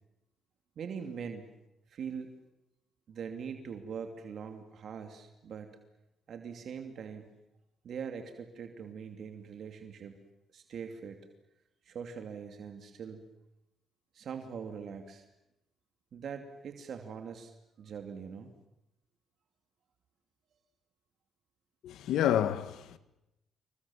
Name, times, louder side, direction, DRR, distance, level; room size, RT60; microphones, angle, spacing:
voice 1, 0.8-1.5 1.9-2.3 3.1-5.8 6.3-7.3 7.8-10.2 10.5-11.2 11.8-13.2 14.1-15.3 16.1-17.5 17.8-18.5, right 6 dB, 60° right, 2.8 m, -42 dB
voice 2, 21.8-23.0, left 10 dB, 80° left, 1.8 m, -29 dB
28.0 x 23.5 x 7.3 m
cardioid pair, 90°, 0 cm